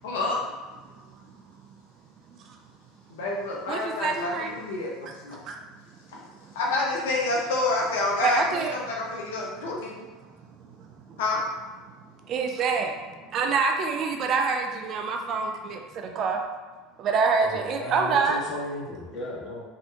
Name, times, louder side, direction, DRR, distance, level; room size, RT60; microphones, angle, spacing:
voice 1, 0.0-0.4 3.1-5.4 6.1-6.2 6.5-10.0 11.2-11.4, left 2 dB, 75° left, -2 dB, 0.6 m, -28 dB
voice 2, 3.7-4.5 5.5-5.6 8.2-8.7 12.3-12.9 13.3-15.8 16.2-16.4 17.0-18.4, right 5 dB, 45° right, 3 dB, 0.4 m, -25 dB
voice 3, 17.4-19.7, left 2 dB, 45° left, -4 dB, 1.1 m, -35 dB
3.3 x 2.7 x 2.6 m, 1.3 s
hypercardioid pair, 75°, 0 cm